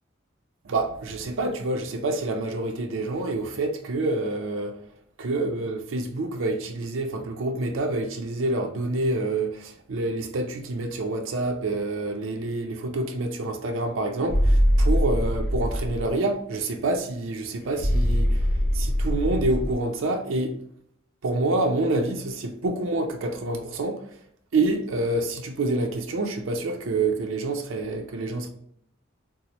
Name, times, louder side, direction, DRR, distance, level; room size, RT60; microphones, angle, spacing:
voice 1, 0.6-4.8 5.2-18.5 18.7-20.5 21.2-24.1 24.5-28.5, right 2 dB, 75° right, 0.5 m, -27 dB
sound 1, 14.3-16.1 17.8-19.7, equal, 40° left, 0.5 m, -22 dB
4.1 x 2.0 x 2.9 m
head